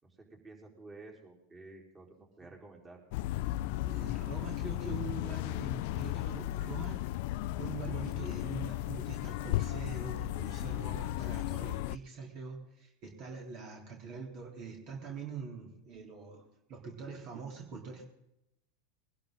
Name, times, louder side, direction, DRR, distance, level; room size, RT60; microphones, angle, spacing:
voice 1, 0.0-3.0, right 2 dB, 20° right, 0 dB, 4.6 m, -52 dB
sound 1, 3.1-12.0, left 16 dB, 65° left, 0.4 m, -35 dB
voice 2, 3.8-7.0 7.6-16.4 16.7-18.0, right 4 dB, 50° right, 0 dB, 3.8 m, -44 dB
22.0 x 11.5 x 4.0 m, 0.82 s
hypercardioid pair, 110°, 0 cm